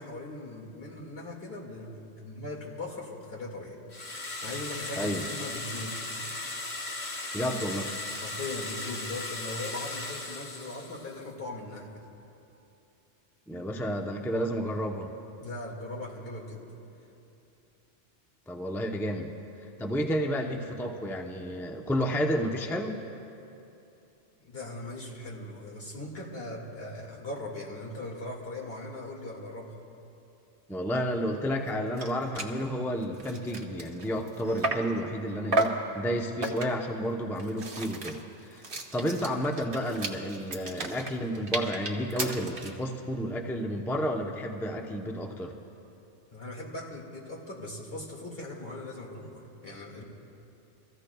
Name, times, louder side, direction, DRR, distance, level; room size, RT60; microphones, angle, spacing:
voice 1, 0.0-3.8 4.4-6.0 8.2-12.1 15.4-16.8 24.4-29.8 46.3-50.0, left 2 dB, 60° left, -2 dB, 2.3 m, -39 dB
sound 1, 3.9-11.2, left 2 dB, 45° left, 1.2 m, -37 dB
voice 2, 7.3-7.9 13.5-15.1 18.5-19.3 19.8-23.0 30.7-38.6 38.9-45.5, equal, 5° left, 2 dB, 0.6 m, -31 dB
sound 2, 31.7-31.8 32.0-32.1 32.3-32.6 33.0-35.0 35.5-35.9 36.4-36.9 37.4-42.8, right 2 dB, 50° right, 1.3 m, -33 dB
25.5 x 15.0 x 2.3 m, 2.8 s
omnidirectional pair, 1.1 m